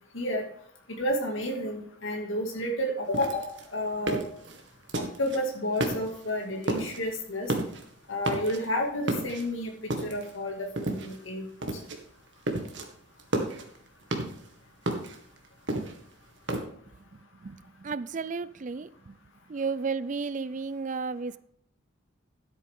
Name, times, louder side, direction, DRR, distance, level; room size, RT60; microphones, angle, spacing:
voice 1, 1.0-4.2 4.9-7.5 8.1-11.5 11.7-11.8, left 1 dB, 85° left, 1 dB, 2.2 m, -31 dB
sound 1, 3.1-5.4 5.8-6.3 6.6-7.0 7.4-7.9 8.2-8.7 9.1-10.4 10.8-11.3 11.6-12.0 12.3-12.9 13.2-14.5 14.9-16.6, right 1 dB, 65° right, 1.9 m, -32 dB
voice 2, 17.4-19.2 19.5-21.4, right 4 dB, 40° right, 17 dB, 0.4 m, -33 dB
13.5 x 8.4 x 3.7 m, 0.66 s
head